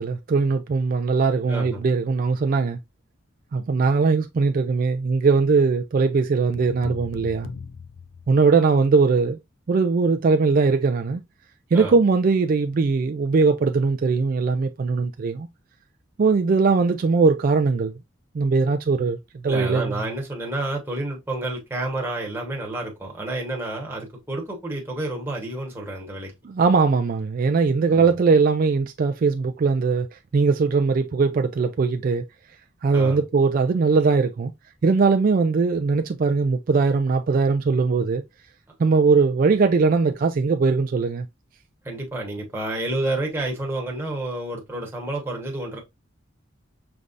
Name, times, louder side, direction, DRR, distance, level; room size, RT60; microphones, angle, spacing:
voice 1, 0.0-2.8 3.5-7.5 8.3-9.4 9.7-11.2 11.7-15.5 16.2-17.9 18.3-19.2 19.4-19.9 26.4-32.2 32.8-34.5 34.8-38.2 38.8-41.3, right 4 dB, 45° right, 0.3 m, -20 dB
voice 2, 1.5-1.8 11.7-11.9 19.5-26.3 27.9-28.1 32.9-33.2 41.8-45.8, right 2 dB, 10° right, 1.1 m, -29 dB
sound 1, 6.5-8.8, left 5 dB, 80° left, 0.4 m, -39 dB
5.2 x 3.4 x 2.5 m
head